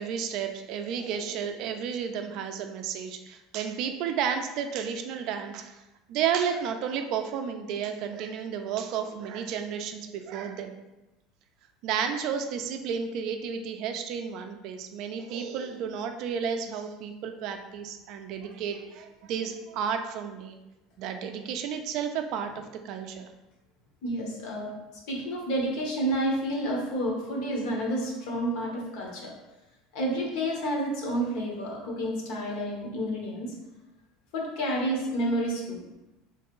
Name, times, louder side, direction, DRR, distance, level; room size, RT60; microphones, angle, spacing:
voice 1, 0.0-5.8 6.1-10.7 11.8-20.6 21.0-23.3, right 7 dB, 50° right, 6 dB, 0.3 m, -32 dB
voice 2, 24.0-24.7 25.1-29.3 29.9-33.5 34.3-35.8, right 1 dB, 65° left, -1 dB, 1.0 m, -30 dB
3.4 x 3.1 x 3.0 m, 1.0 s
cardioid pair, 160°, 0 cm